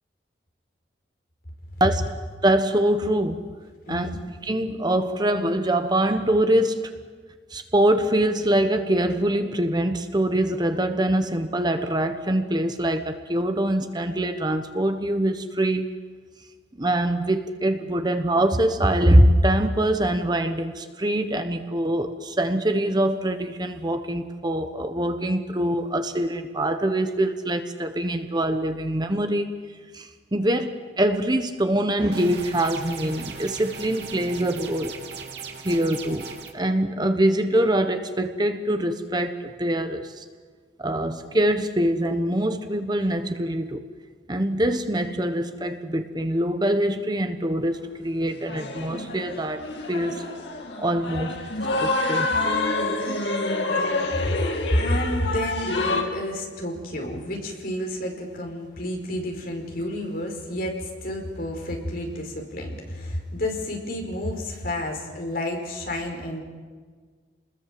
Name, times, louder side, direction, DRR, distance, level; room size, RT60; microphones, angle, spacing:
voice 1, 2.4-3.5 3.9-4.1 4.4-7.0 7.5-15.9 16.8-29.5 29.9-34.9 35.6-36.3 36.5-40.2 40.8-43.8 44.3-49.6 49.9-50.3 50.8-51.5 51.8-52.3 53.0-53.3, right 1 dB, 25° right, 8 dB, 1.2 m, -24 dB
voice 2, 3.8-4.2 54.1-66.4, left 1 dB, 55° left, 2 dB, 5.1 m, -30 dB
sound 1, 32.1-36.5, right 5 dB, 65° right, 2.6 m, -38 dB
sound 2, 48.2-56.0, left 2 dB, 80° left, 2.9 m, -27 dB
29.0 x 21.0 x 7.7 m, 1.5 s
head